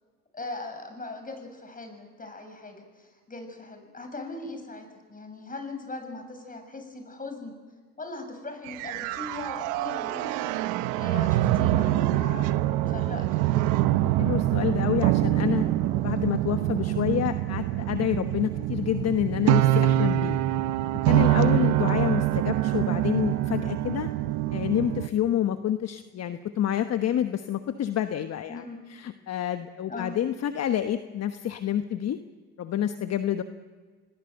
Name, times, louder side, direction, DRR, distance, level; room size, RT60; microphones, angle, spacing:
voice 1, 0.3-7.5 8.0-10.6 11.0-12.6 12.8-13.8 28.5-28.8 29.9-30.2, left 2 dB, 30° left, 6 dB, 7.0 m, -39 dB
sound 1, 8.7-25.1, right 14 dB, 85° right, 1.0 m, -25 dB
voice 2, 14.2-15.7 16.0-20.4 20.9-24.1 24.5-28.6 28.9-32.2 32.6-33.4, left 10 dB, 55° left, 9 dB, 1.1 m, -28 dB
27.5 x 19.5 x 7.9 m, 1.5 s
supercardioid pair, 65°, 30 cm